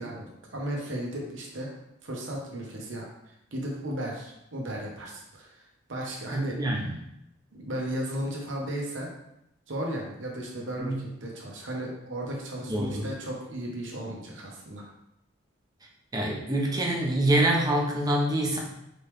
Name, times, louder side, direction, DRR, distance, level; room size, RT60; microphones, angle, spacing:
voice 1, 0.0-1.7 2.0-6.6 7.5-9.1 9.7-14.9, right 1 dB, 85° right, -1 dB, 1.1 m, -35 dB
voice 2, 6.3-7.0 10.8-11.0 12.7-13.0 16.1-18.6, right 1 dB, 20° right, -1 dB, 0.8 m, -26 dB
4.0 x 3.3 x 3.5 m, 0.80 s
head